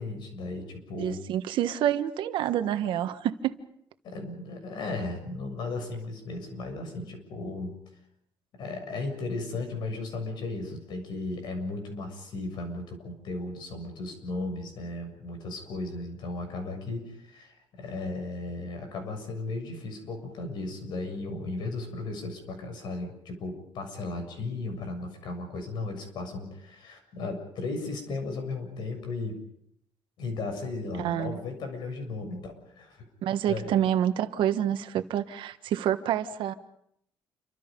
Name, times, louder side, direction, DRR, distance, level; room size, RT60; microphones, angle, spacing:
voice 1, 0.0-1.2 2.8-2.9 4.0-7.8 8.6-29.4 30.2-33.1 33.5-33.7, left 3 dB, 60° left, 6 dB, 7.1 m, -35 dB
voice 2, 0.9-3.6 31.0-31.4 33.2-36.5, right 11 dB, 75° right, 9 dB, 1.5 m, -27 dB
29.0 x 25.0 x 5.4 m, 0.73 s
cardioid pair, 180°, 9 cm